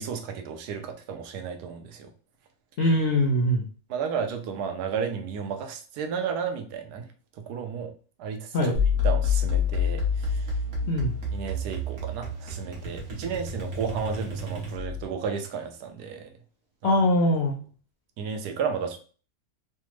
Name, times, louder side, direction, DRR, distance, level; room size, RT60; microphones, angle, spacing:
voice 1, 0.0-2.1 3.9-7.1 7.5-7.9 8.2-8.7 9.0-10.5 11.3-16.3 16.8-17.0 18.2-19.0, right 6 dB, 80° right, 5 dB, 1.1 m, -33 dB
voice 2, 2.8-3.6 8.5-8.8 10.9-11.1 16.8-17.6, left 1 dB, 70° left, 0 dB, 0.6 m, -22 dB
sound 1, 8.7-15.1, left 5 dB, 45° right, 1.2 m, -28 dB
3.3 x 2.1 x 3.0 m, 0.39 s
omnidirectional pair, 1.7 m